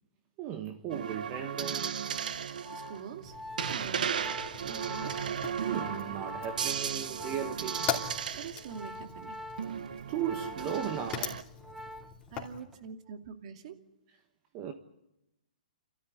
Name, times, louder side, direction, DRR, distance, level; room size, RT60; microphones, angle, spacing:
voice 1, 0.4-2.0 5.6-7.9 10.1-11.4 14.5-14.7, right 9 dB, 30° right, 1.6 m, -36 dB
sound 1, 0.9-8.8 9.6-11.4, right 7 dB, 70° right, 1.0 m, -35 dB
Organ, 2.3-12.3 12.6-12.9, left 1 dB, 5° right, 1.1 m, -45 dB
voice 2, 2.7-3.4 3.7-4.3 4.6-5.2 8.3-9.4 12.3-13.8, right 6 dB, 50° right, 2.4 m, -44 dB
Fire, 3.2-12.6, left 8 dB, 25° left, 2.9 m, -42 dB
29.5 x 13.5 x 9.8 m
hypercardioid pair, 140°, 5 cm